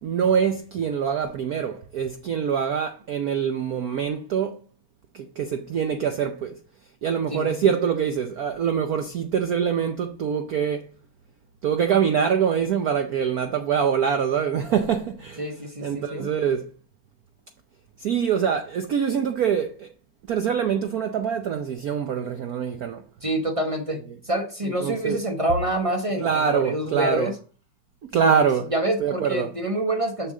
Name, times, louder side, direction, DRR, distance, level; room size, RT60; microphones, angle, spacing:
voice 1, 0.0-4.6 5.1-6.5 7.0-10.9 11.6-15.5 15.8-16.7 18.0-19.9 20.3-23.0 24.8-25.2 26.2-27.3 28.0-28.7 29.0-29.5, right 7 dB, 75° right, 0.8 m, -24 dB
voice 2, 7.3-7.6 15.4-16.3 23.2-27.3 28.2-28.4 28.7-30.3, right 1 dB, 40° right, 0.4 m, -27 dB
7.0 x 7.0 x 3.7 m
omnidirectional pair, 2.4 m